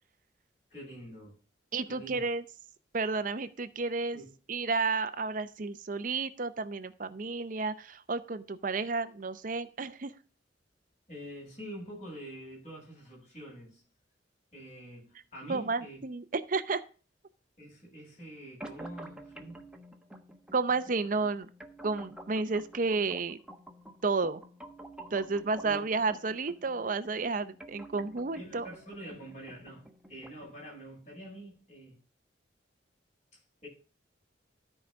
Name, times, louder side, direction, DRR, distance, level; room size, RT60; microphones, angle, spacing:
voice 1, 0.7-1.4 1.9-2.2 4.1-4.3 11.1-13.8 14.5-16.0 17.6-19.6 25.6-25.8 28.3-32.0 33.3-33.7, right 1 dB, 40° left, 7.3 m, -46 dB
voice 2, 1.7-2.4 2.9-4.2 4.5-10.1 15.5-16.8 20.5-21.5 21.8-23.4 24.0-24.4 25.1-28.7, right 4 dB, 45° right, 0.6 m, -31 dB
sound 1, 18.6-30.6, right 1 dB, 5° right, 1.1 m, -50 dB
13.0 x 4.9 x 6.2 m
head